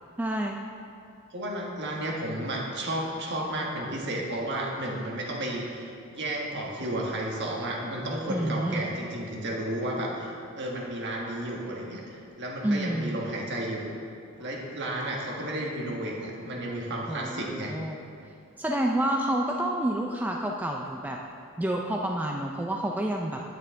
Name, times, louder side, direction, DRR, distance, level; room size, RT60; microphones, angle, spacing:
voice 1, 0.2-0.6 8.3-8.8 12.6-13.2 17.1-18.0 18.6-21.2 21.6-23.4, right 1 dB, 10° right, 0 dB, 0.3 m, -29 dB
voice 2, 1.3-13.9 14.4-17.7, right 1 dB, 55° right, -2 dB, 1.4 m, -32 dB
9.2 x 8.4 x 3.6 m, 2.5 s
head